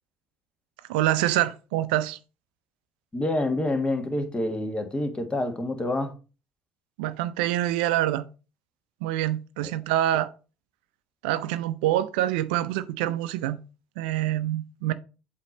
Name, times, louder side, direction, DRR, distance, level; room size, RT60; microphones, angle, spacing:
voice 1, 0.9-2.2 7.0-8.2 9.0-10.3 11.2-13.6 14.0-14.9, right 13 dB, 70° right, 0.5 m, -26 dB
voice 2, 3.1-6.2 9.6-9.7, left 1 dB, 20° left, 1.5 m, -27 dB
8.0 x 2.9 x 5.2 m
hypercardioid pair, 55°, 5 cm